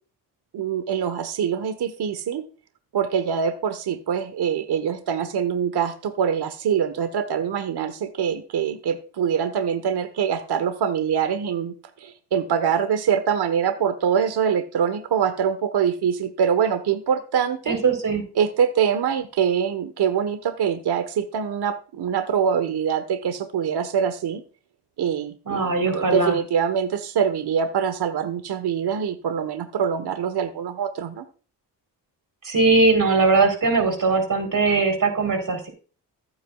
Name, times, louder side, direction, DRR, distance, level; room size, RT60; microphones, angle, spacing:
voice 1, 0.5-2.5 2.9-17.8 18.4-24.4 25.0-31.2, right 7 dB, 65° right, 10 dB, 1.3 m, -24 dB
voice 2, 17.7-18.2 25.5-26.4 32.4-35.7, right 3 dB, 50° right, 5 dB, 3.8 m, -20 dB
15.0 x 8.7 x 2.4 m, 0.37 s
supercardioid pair, 55°, 42 cm